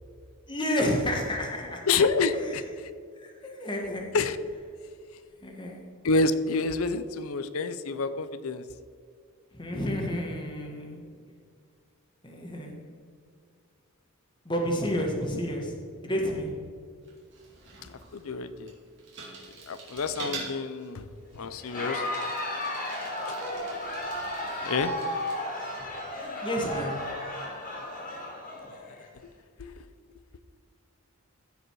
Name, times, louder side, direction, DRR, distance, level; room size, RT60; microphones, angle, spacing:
voice 1, 0.5-1.8 2.3-2.8 3.2-4.0 4.5-4.6 5.4-5.8 9.6-11.0 12.2-12.8 14.4-16.5 21.4-21.5 26.4-26.9, equal, 20° left, 0 dB, 1.4 m, -30 dB
voice 2, 1.9-2.6 4.1-4.4 6.0-8.6 18.1-18.7 19.7-21.1 21.3-22.0 23.3-23.4 24.6-24.9 29.6-29.8, left 3 dB, 70° left, 12 dB, 0.5 m, -28 dB
Bicycle, 17.0-25.4, right 4 dB, 55° right, 2.7 m, -45 dB
Crowd, 21.6-29.1, left 1 dB, 35° left, 2.3 m, -34 dB
15.5 x 5.2 x 4.7 m, 2.1 s
head